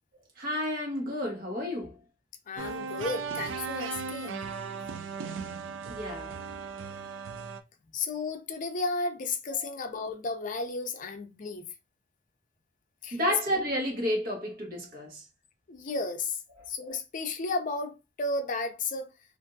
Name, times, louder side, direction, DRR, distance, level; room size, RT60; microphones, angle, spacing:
voice 1, 0.4-2.0 5.9-6.3 13.1-15.2, equal, 50° right, 1.2 m, -31 dB
voice 2, 2.5-4.5 7.9-11.7 13.0-13.2 15.7-16.4 16.7-19.1, left 3 dB, 45° left, 0.5 m, -33 dB
sound 1, 2.6-7.6, right 5 dB, 80° right, 0.4 m, -37 dB
3.4 x 2.5 x 2.6 m
head